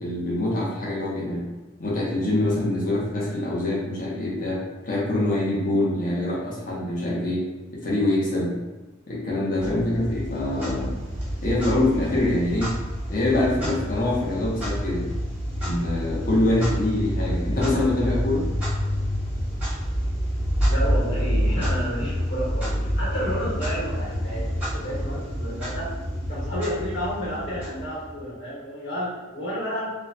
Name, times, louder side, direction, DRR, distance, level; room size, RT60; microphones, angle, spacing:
voice 1, 0.0-1.4 1.8-7.4 7.7-8.5 9.1-10.9 11.4-12.7 13.1-15.0 15.6-18.5, left 1 dB, 45° left, -5 dB, 0.8 m, -24 dB
Clock, 9.6-28.3, equal, 5° right, 0.8 m, -28 dB
voice 2, 20.7-25.9 26.3-29.9, equal, 70° left, -7 dB, 1.3 m, -31 dB
3.0 x 2.2 x 2.6 m, 1.2 s
head